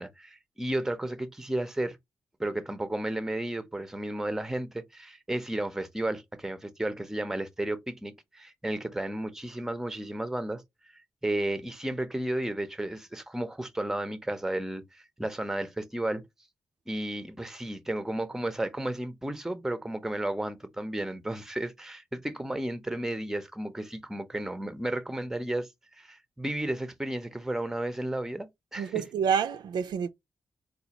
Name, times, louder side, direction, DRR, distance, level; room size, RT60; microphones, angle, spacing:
voice 1, 0.0-2.0 2.4-10.6 11.2-16.2 16.9-25.7 26.0-28.9, right 1 dB, 5° right, 0.5 m, -33 dB
voice 2, 28.8-30.1, right 7 dB, 80° right, 0.4 m, -28 dB
4.0 x 2.2 x 2.8 m
cardioid pair, 95°, 7 cm